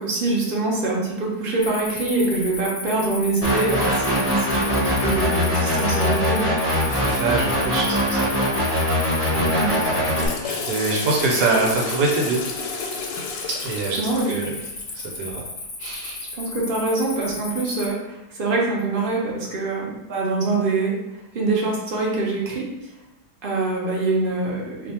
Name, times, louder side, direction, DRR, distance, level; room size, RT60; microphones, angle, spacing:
voice 1, 0.0-6.6 9.5-9.7 14.0-14.4 16.3-20.9 21.3-22.7 23.4-24.9, right 3 dB, 50° right, -3 dB, 0.6 m, -24 dB
Cricket, 1.6-17.9, left 3 dB, 50° left, 0.8 m, -34 dB
sound 1, 3.4-10.3, equal, 15° left, 0.6 m, -22 dB
voice 2, 6.9-8.4 8.9-12.4 13.5-14.6 14.9-15.4 15.8-16.2, right 3 dB, 80° right, -2 dB, 1.2 m, -25 dB
Water / Toilet flush, 10.0-15.1, left 5 dB, 90° left, 1.2 m, -32 dB
2.6 x 2.5 x 4.2 m, 0.94 s
omnidirectional pair, 1.8 m